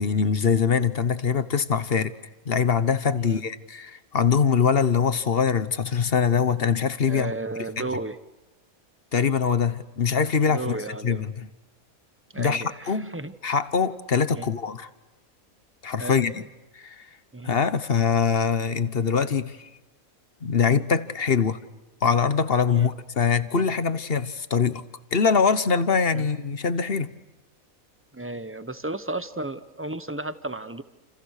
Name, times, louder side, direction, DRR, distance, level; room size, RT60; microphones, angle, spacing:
voice 1, 0.0-2.1 2.5-7.3 9.1-10.8 11.0-11.5 12.4-13.2 13.4-14.9 15.8-16.4 16.8-17.0 17.4-19.7 20.4-21.6 22.0-24.8 25.1-27.1, left 6 dB, 45° left, 13 dB, 1.3 m, -23 dB
voice 2, 7.0-8.2 10.5-11.2 12.3-13.3 14.3-14.5 16.0-16.5 17.3-17.5 22.7-22.9 26.1-26.3 28.1-30.8, right 2 dB, 10° right, 12 dB, 0.9 m, -33 dB
29.5 x 28.0 x 6.6 m, 1.0 s
omnidirectional pair, 1.5 m